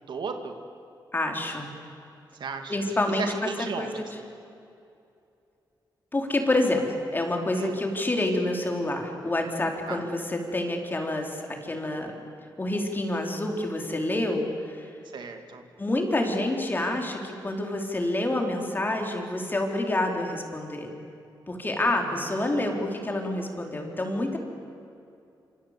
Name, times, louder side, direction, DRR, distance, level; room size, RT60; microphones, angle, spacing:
voice 1, 0.1-0.6 2.4-2.8 3.2-4.1 7.5-7.8 9.9-10.0 15.1-15.6 21.9-22.2 22.5-22.6, right 5 dB, 70° right, 5 dB, 2.5 m, -35 dB
voice 2, 1.1-1.7 2.7-3.3 3.8-3.9 6.1-12.1 12.6-14.9 15.8-20.9 21.5-24.4, left 1 dB, 25° left, 2 dB, 4.0 m, -28 dB
26.5 x 26.5 x 8.3 m, 2.6 s
wide cardioid pair, 110°, 8 cm